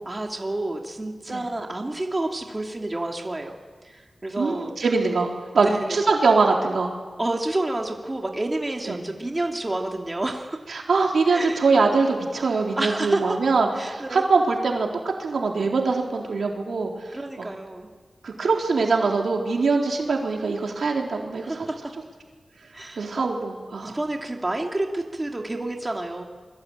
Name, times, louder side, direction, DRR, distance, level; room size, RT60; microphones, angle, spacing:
voice 1, 0.1-3.6 3.8-4.7 5.6-6.0 7.2-10.6 11.3-11.7 12.8-13.4 13.8-14.2 17.1-17.9 21.4-21.8 22.7-23.3 23.8-26.2, right 2 dB, 25° right, 2 dB, 2.6 m, -29 dB
voice 2, 4.4-6.9 8.9-9.1 10.7-14.9 15.2-16.9 17.4-17.5 18.2-21.7 23.0-24.0, right 4 dB, 85° right, 1 dB, 3.9 m, -23 dB
28.0 x 22.5 x 8.9 m, 1.5 s
wide cardioid pair, 95°, 0 cm